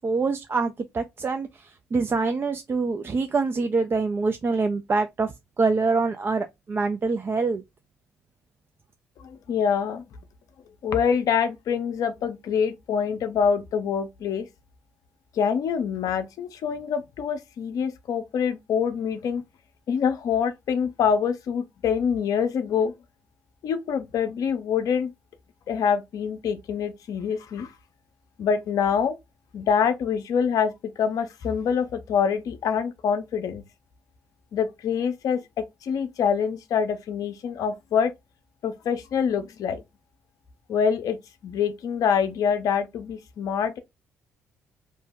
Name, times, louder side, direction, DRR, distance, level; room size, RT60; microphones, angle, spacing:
voice 1, 0.0-1.5 1.9-7.6, right 4 dB, 35° right, 0.4 m, -25 dB
voice 2, 9.2-10.0 10.8-14.5 15.3-19.4 19.9-22.9 23.6-25.1 25.7-27.7 28.4-29.1 29.5-33.6 34.5-35.4 35.8-38.1 38.6-39.8 40.7-41.2 41.4-43.8, left 7 dB, 60° left, 0.5 m, -25 dB
2.7 x 2.1 x 3.5 m
hypercardioid pair, 50°, 7 cm